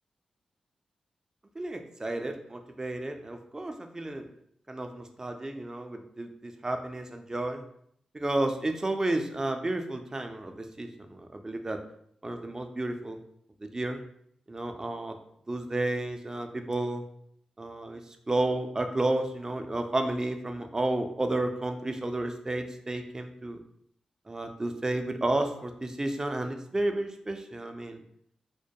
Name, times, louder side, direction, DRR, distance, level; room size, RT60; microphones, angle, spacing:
voice 1, 1.6-4.3 4.7-7.6 8.1-11.8 12.2-13.2 13.6-14.0 14.5-15.2 15.5-17.0 17.6-23.6 24.3-28.0, right 2 dB, 25° right, 6 dB, 0.4 m, -32 dB
2.2 x 2.2 x 2.7 m, 0.69 s
cardioid pair, 50°, 2 cm